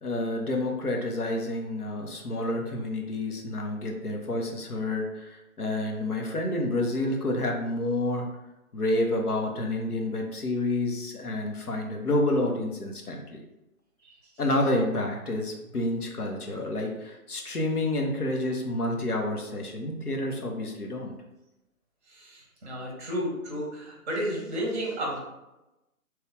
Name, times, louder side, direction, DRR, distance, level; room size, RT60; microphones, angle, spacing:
voice 1, 0.0-8.2 8.7-13.4 14.4-21.1, left 1 dB, 85° left, 1 dB, 0.8 m, -29 dB
voice 2, 22.1-25.2, equal, 25° right, -2 dB, 0.7 m, -32 dB
3.0 x 2.3 x 3.2 m, 0.96 s
figure-of-eight pair, 140°, 44 cm